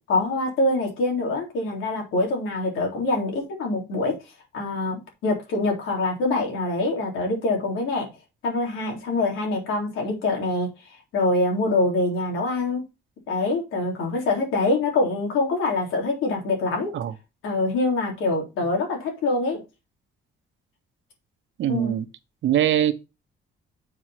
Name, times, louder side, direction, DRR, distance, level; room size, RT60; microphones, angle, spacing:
voice 1, 0.1-4.2 4.5-8.1 8.4-10.7 11.1-12.8 13.3-16.9 17.4-19.6 21.7-22.0, left 2 dB, 85° left, 3.7 m, -24 dB
voice 2, 21.6-22.0 22.4-22.9, right 11 dB, 70° right, 1.0 m, -22 dB
7.2 x 4.8 x 5.7 m
cardioid pair, 90°, 20 cm